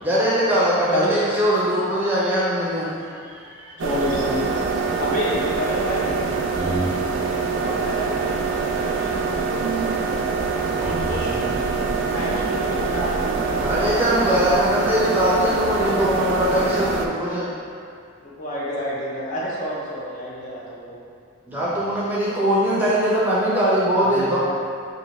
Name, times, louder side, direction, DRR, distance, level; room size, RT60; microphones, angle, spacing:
voice 1, 0.0-2.9 13.5-17.5 21.5-24.4, equal, 10° right, -8 dB, 0.6 m, -21 dB
voice 2, 3.8-6.2 7.4-9.7 12.0-14.2 18.2-21.0, equal, 40° left, -7 dB, 0.5 m, -29 dB
sound 1, 3.8-17.1, right 4 dB, 70° right, 0.4 m, -24 dB
voice 3, 6.5-6.9 10.7-11.7 21.5-21.8 24.1-24.4, right 1 dB, 20° left, -8 dB, 0.9 m, -30 dB
5.4 x 2.7 x 3.0 m, 2.3 s
head